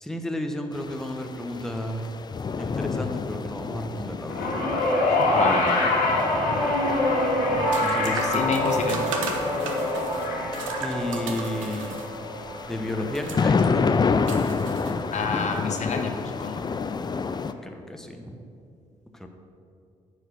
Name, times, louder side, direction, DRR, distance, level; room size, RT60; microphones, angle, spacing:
voice 1, 0.0-2.1 2.6-4.5 7.5-8.7 10.8-12.0 12.7-14.0 17.6-18.4 19.2-19.3, left 1 dB, 5° left, 4 dB, 0.9 m, -32 dB
sound 1, 0.7-17.5, left 5 dB, 25° left, 0.5 m, -30 dB
sound 2, 4.3-14.7 15.8-15.9, left 1 dB, 70° left, 1.9 m, -26 dB
voice 2, 5.3-5.9 8.0-9.0 15.1-16.1 16.4-16.6, left 4 dB, 45° left, 4 dB, 0.9 m, -27 dB
sound 3, 6.7-15.4, right 5 dB, 85° right, 0.7 m, -38 dB
9.4 x 4.9 x 6.1 m, 2.5 s
hypercardioid pair, 45°, 16 cm